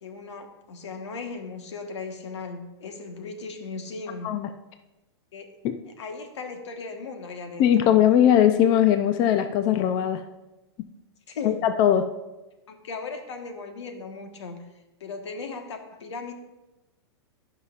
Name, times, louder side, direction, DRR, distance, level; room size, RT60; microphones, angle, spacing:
voice 1, 0.0-4.3 5.3-5.6 5.8-7.9 11.3-11.6 12.7-14.7 15.0-16.3, left 4 dB, 80° left, 5 dB, 1.3 m, -37 dB
voice 2, 7.6-10.2 11.4-12.0, left 10 dB, 30° left, 9 dB, 0.4 m, -20 dB
16.0 x 5.6 x 2.5 m, 1.0 s
hypercardioid pair, 145°, 14 cm